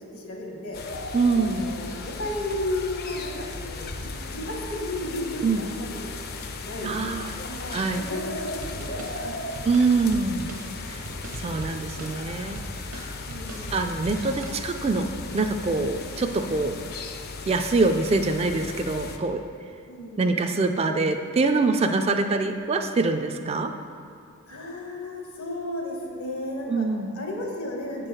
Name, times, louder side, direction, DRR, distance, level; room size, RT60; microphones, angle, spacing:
voice 1, 0.1-0.8 1.3-6.1 6.6-9.4 13.2-13.8 19.9-20.2 24.5-26.9 27.1-28.1, left 1 dB, 75° left, 0 dB, 1.5 m, -34 dB
sound 1, 0.7-19.2, left 3 dB, 45° left, 0.5 m, -36 dB
voice 2, 1.1-1.7 5.4-5.6 6.8-7.4 7.7-8.1 9.6-10.5 10.9-11.0 11.4-12.6 13.7-15.1 15.3-16.7 17.5-19.4 20.2-23.7 26.7-27.1, right 3 dB, 30° right, 6 dB, 0.3 m, -24 dB
sound 2, 8.6-15.1, right 1 dB, 70° right, 0.9 m, -41 dB
8.0 x 4.5 x 6.3 m, 2.4 s
head